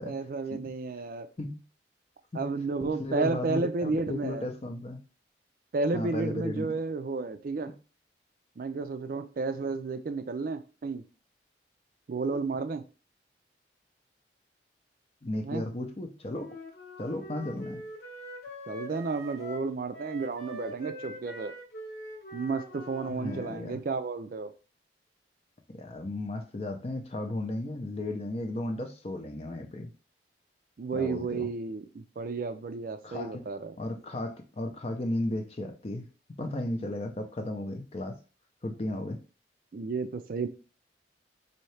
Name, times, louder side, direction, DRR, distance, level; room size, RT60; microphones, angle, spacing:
voice 1, 0.0-1.3 2.3-4.5 5.7-7.7 8.6-11.0 12.1-12.9 15.4-15.6 18.7-21.5 22.3-24.5 30.8-33.7 39.7-40.5, right 4 dB, 50° right, 0.4 m, -32 dB
voice 2, 2.8-5.0 5.9-6.7 15.2-16.6 17.0-17.9 23.1-23.8 25.7-29.9 30.9-31.5 33.0-33.5 33.8-36.1 36.4-38.2 38.6-39.2, left 1 dB, 35° left, 0.5 m, -35 dB
Wind instrument woodwind instrument, 16.3-23.6, equal, 65° left, 1.0 m, -43 dB
4.2 x 2.7 x 3.2 m
head